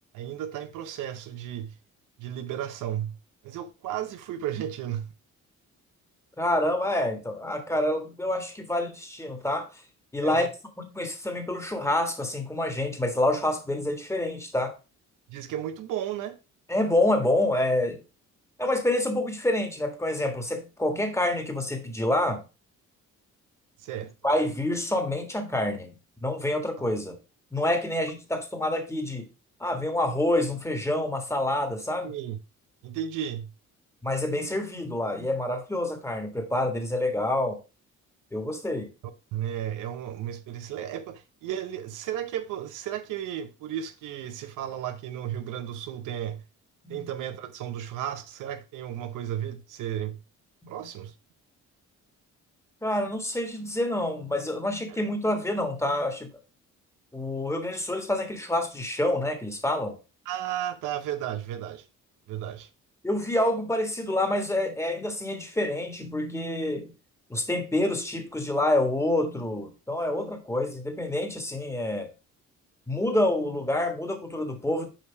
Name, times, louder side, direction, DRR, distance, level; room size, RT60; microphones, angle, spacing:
voice 1, 0.1-1.7 2.2-3.2 3.4-5.1 10.2-10.5 15.3-16.4 23.8-24.1 32.0-32.4 32.8-33.5 39.3-46.4 46.9-50.2 50.7-51.1 60.3-61.9 62.3-62.7, right 10 dB, 90° right, 0.8 m, -34 dB
voice 2, 6.4-9.8 10.1-10.5 10.8-14.7 16.7-18.0 18.6-22.4 24.2-25.9 26.2-27.2 27.5-29.2 29.6-32.1 34.0-37.6 38.3-38.9 46.8-47.1 52.8-56.3 57.1-60.0 63.0-66.9 67.3-72.1 72.9-74.9, left 1 dB, 10° left, 1.7 m, -27 dB
6.0 x 4.7 x 4.7 m
cardioid pair, 90°, 30 cm